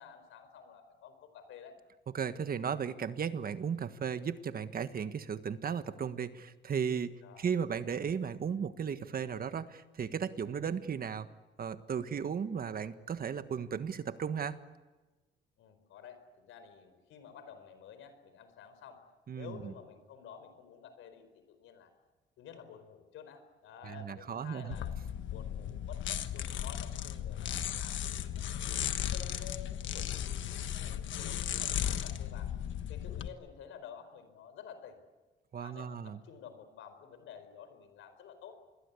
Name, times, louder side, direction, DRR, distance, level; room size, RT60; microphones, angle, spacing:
voice 1, 0.0-1.8 7.2-7.5 15.6-19.0 19.3-21.9 22.4-25.0 25.3-32.5 32.9-35.0 35.6-38.6, left 8 dB, 85° left, 9 dB, 4.7 m, -51 dB
voice 2, 2.1-11.3 11.6-14.6 19.3-19.7 23.8-24.8 35.5-36.2, right 7 dB, 50° right, 11 dB, 1.5 m, -35 dB
sound 1, 24.7-33.3, left 10 dB, 70° left, 1.4 m, -36 dB
27.0 x 21.5 x 8.4 m, 1.2 s
cardioid pair, 90°, 20 cm